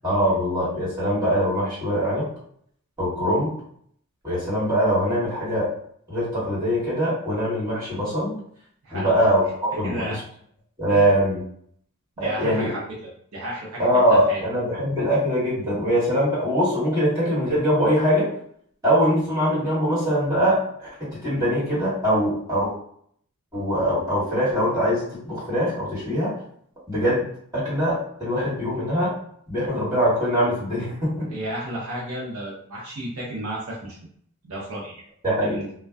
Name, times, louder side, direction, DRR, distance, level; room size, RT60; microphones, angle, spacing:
voice 1, 0.0-2.3 3.0-3.5 4.2-5.7 6.1-8.3 8.9-10.2 10.8-11.4 12.2-12.7 13.8-18.3 18.8-22.7 23.5-26.3 26.9-27.3 27.5-29.1 29.5-31.3 35.2-35.6, equal, 15° right, -11 dB, 1.4 m, -22 dB
voice 2, 8.8-9.1 9.8-10.2 10.9-11.1 12.2-14.4 31.3-34.0 34.4-35.0 35.4-35.7, right 1 dB, 70° right, -4 dB, 0.6 m, -33 dB
2.5 x 2.2 x 2.2 m, 0.64 s
head